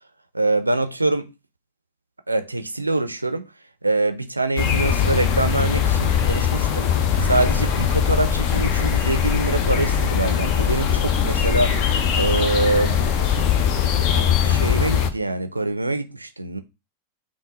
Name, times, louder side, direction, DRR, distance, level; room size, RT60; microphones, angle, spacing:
voice 1, 0.3-1.3 2.3-3.5 3.8-6.9 7.2-11.8 12.2-13.0 14.0-16.6, right 2 dB, 85° right, 0.4 m, -24 dB
sound 1, 4.6-15.1, left 8 dB, 40° left, 0.6 m, -21 dB
5.6 x 2.2 x 3.9 m
figure-of-eight pair, 90°, 0 cm